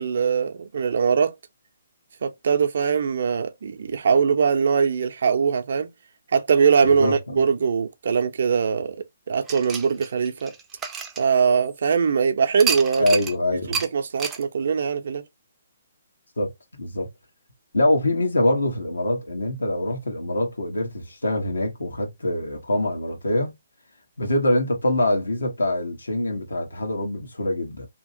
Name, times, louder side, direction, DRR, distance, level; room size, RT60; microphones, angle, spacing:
voice 1, 0.0-1.3 2.2-5.9 6.3-9.0 9.3-10.5 11.2-13.1 13.7-15.2, right 6 dB, 60° right, 0.6 m, -21 dB
voice 2, 6.8-7.4 13.0-13.8 16.4-16.5 16.8-17.1 17.7-23.5 24.2-27.9, left 1 dB, 80° left, 1.2 m, -24 dB
sound 1, 9.5-11.9 12.6-13.4 13.7-13.9 14.2-14.4, right 6 dB, 15° right, 0.5 m, -30 dB
2.9 x 2.8 x 2.6 m
figure-of-eight pair, 140°, 0 cm